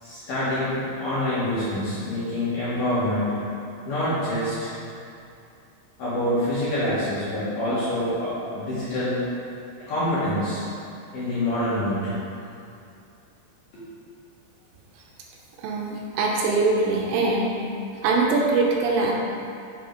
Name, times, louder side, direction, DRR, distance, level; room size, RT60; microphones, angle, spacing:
voice 1, 0.0-3.3 3.8-4.7 6.0-9.2 9.8-10.6 11.1-12.1 13.7-13.8, left 1 dB, 55° left, -12 dB, 2.7 m, -26 dB
voice 2, 15.6-17.5 18.0-19.1, right 3 dB, 85° right, -1 dB, 3.2 m, -22 dB
7.8 x 5.2 x 5.2 m, 2.6 s
omnidirectional pair, 6.0 m